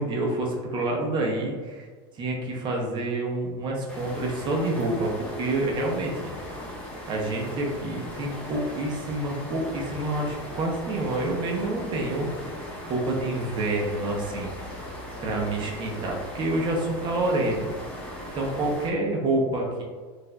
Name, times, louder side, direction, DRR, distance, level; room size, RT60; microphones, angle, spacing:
voice 1, 0.0-1.9 2.1-6.1 7.1-12.3 12.9-14.5 15.2-17.7 18.3-19.8, right 2 dB, 35° right, -1 dB, 0.7 m, -28 dB
sound 1, 3.9-18.9, left 1 dB, 10° left, 1.0 m, -38 dB
4.3 x 2.5 x 2.2 m, 1.5 s
supercardioid pair, 130°, 14 cm